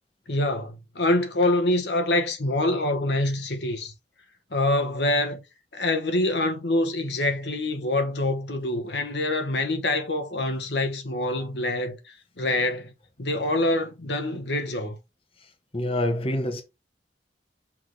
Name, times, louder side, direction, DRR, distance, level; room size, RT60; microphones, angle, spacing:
voice 1, 0.3-3.9 4.5-5.4 5.7-12.9 13.2-15.0, left 1 dB, 70° left, 1.3 m, -25 dB
voice 2, 15.7-16.6, left 1 dB, 35° left, 1.1 m, -26 dB
6.0 x 3.6 x 4.8 m
head